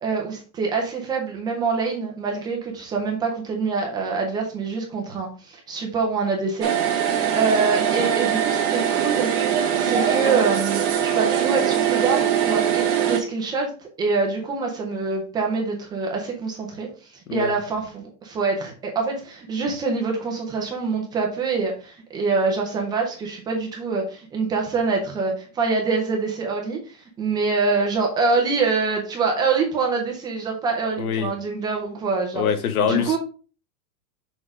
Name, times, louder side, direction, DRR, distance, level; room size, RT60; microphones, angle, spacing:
voice 1, 0.0-32.4 32.8-33.2, right 4 dB, 10° right, 1 dB, 0.5 m, -25 dB
sound 1, 6.6-13.2, right 9 dB, 30° right, 1.4 m, -22 dB
voice 2, 31.0-31.3 32.3-33.1, left 7 dB, 85° left, 8 dB, 1.3 m, -23 dB
6.3 x 3.8 x 4.7 m, 0.36 s
supercardioid pair, 175°, 42 cm